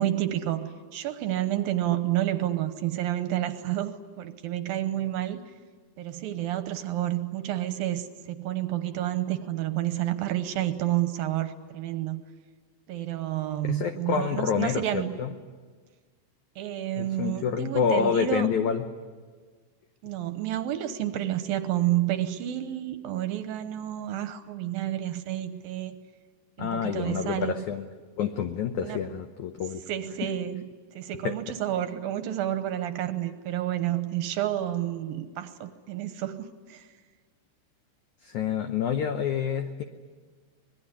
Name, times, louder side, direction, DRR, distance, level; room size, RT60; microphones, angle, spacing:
voice 1, 0.0-5.4 6.0-12.2 12.9-15.1 16.6-18.5 20.0-26.0 26.6-27.6 28.8-29.0 29.9-36.9, right 13 dB, 70° right, 10 dB, 2.5 m, -30 dB
voice 2, 13.7-15.3 17.0-18.8 26.6-27.9 28.2-29.8 31.2-31.3 38.2-39.8, left 7 dB, 80° left, 7 dB, 1.7 m, -28 dB
25.5 x 21.0 x 9.8 m, 1.5 s
omnidirectional pair, 4.7 m